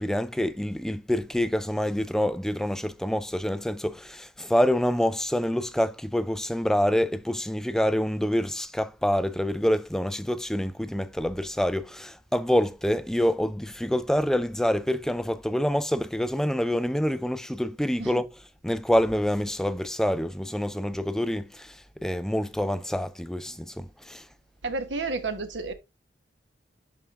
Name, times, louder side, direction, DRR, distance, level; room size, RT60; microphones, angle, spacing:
voice 1, 0.0-24.3, equal, 5° left, 0.3 m, -26 dB
voice 2, 24.6-25.7, right 3 dB, 90° right, 1.1 m, -31 dB
11.0 x 3.7 x 2.5 m
head